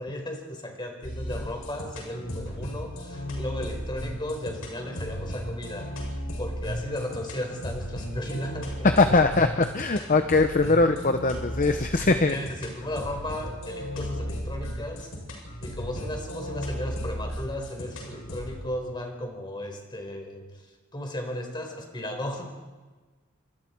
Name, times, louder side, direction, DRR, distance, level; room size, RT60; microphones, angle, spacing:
voice 1, 0.0-9.2 12.3-15.1 15.6-20.5 20.9-22.4, left 1 dB, 20° left, 3 dB, 4.7 m, -35 dB
sound 1, 1.0-18.6, equal, 70° left, 7.7 m, -35 dB
voice 2, 8.8-12.4, left 3 dB, 40° left, 7 dB, 0.9 m, -21 dB
29.5 x 26.0 x 4.6 m, 1.3 s
head